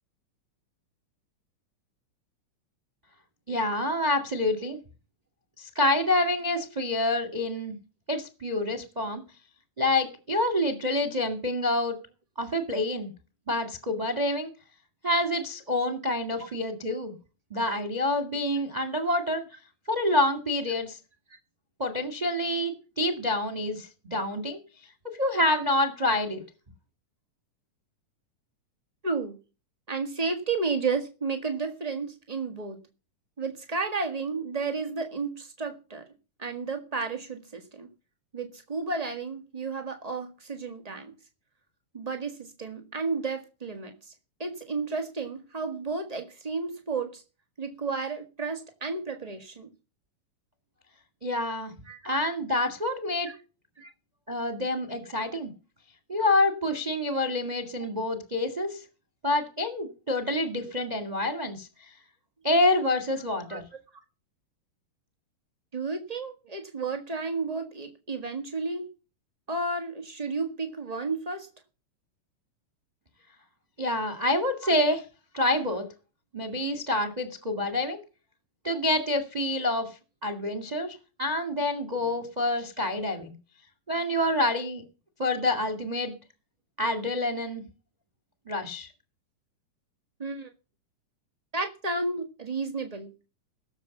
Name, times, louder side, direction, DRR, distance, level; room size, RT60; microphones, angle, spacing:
voice 1, 3.5-4.8 5.6-7.7 8.1-9.2 9.8-12.0 12.4-13.1 13.5-14.5 15.0-17.1 17.5-19.4 19.9-21.0 21.8-24.6 25.2-26.4 51.2-51.7 52.0-53.4 54.3-55.5 56.1-58.8 59.2-61.9 62.4-63.6 73.8-75.0 75.3-75.9 76.3-78.0 78.6-83.3 83.9-84.8 85.2-86.1 86.8-87.6 88.5-88.9, left 1 dB, 15° right, 9 dB, 1.4 m, -27 dB
voice 2, 29.0-29.4 29.9-32.8 33.4-36.1 36.4-37.9 38.3-41.1 41.9-44.1 44.4-47.2 47.6-49.7 51.9-52.2 53.8-53.9 63.5-63.6 65.7-68.9 69.5-71.5 74.6-74.7 90.2-90.5 91.5-93.1, right 4 dB, 50° right, 5 dB, 0.4 m, -32 dB
17.0 x 7.3 x 7.1 m, 0.33 s
omnidirectional pair, 3.8 m